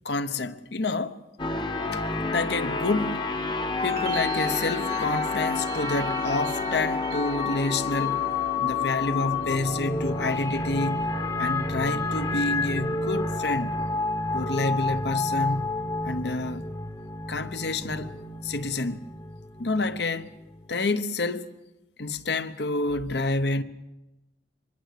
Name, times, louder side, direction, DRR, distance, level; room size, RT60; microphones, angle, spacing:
voice 1, 0.0-1.2 2.3-3.2 3.8-8.3 8.6-11.1 11.4-13.7 14.3-15.8 16.0-16.6 17.3-18.1 18.4-19.1 19.6-20.3 20.7-21.6 22.0-23.6, left 3 dB, 70° left, 1.0 m, -28 dB
sound 1, 1.4-20.8, left 3 dB, 25° left, 1.0 m, -29 dB
sound 2, 3.8-8.8 9.1-9.8, right 8 dB, 55° right, 1.1 m, -43 dB
24.5 x 21.0 x 6.7 m
head